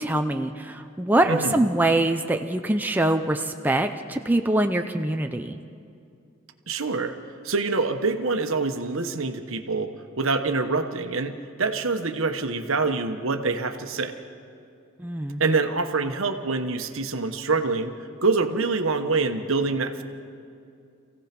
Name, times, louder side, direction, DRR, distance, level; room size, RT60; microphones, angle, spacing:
voice 1, 0.0-5.6 15.0-15.4, right 1 dB, 10° right, 5 dB, 0.6 m, -24 dB
voice 2, 1.3-1.6 6.7-7.1 7.4-14.1 15.4-17.9 18.2-20.0, right 3 dB, 70° right, 7 dB, 1.2 m, -25 dB
27.5 x 16.0 x 6.0 m, 2.4 s
head